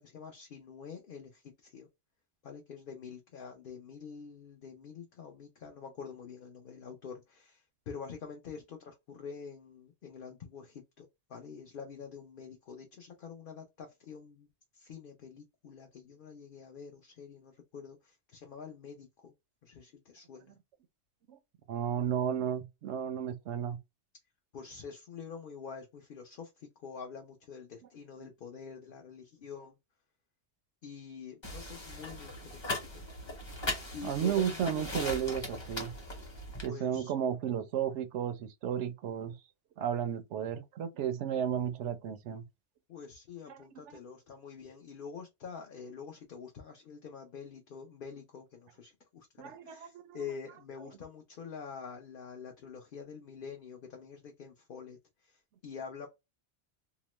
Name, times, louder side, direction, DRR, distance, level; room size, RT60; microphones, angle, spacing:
voice 1, 0.0-1.9 2.4-14.5 14.7-19.3 19.6-20.5 24.5-29.8 30.8-33.0 33.9-34.8 36.6-37.1 42.9-55.0 55.2-56.1, left 6 dB, 55° left, 0.8 m, -46 dB
voice 2, 21.7-23.8 34.0-35.9 36.6-39.3 39.8-42.4 43.5-43.6 49.4-50.2, right 9 dB, 85° right, 0.9 m, -33 dB
sound 1, 31.4-36.7, left 1 dB, 25° left, 0.9 m, -39 dB
2.9 x 2.0 x 3.0 m
omnidirectional pair, 1.2 m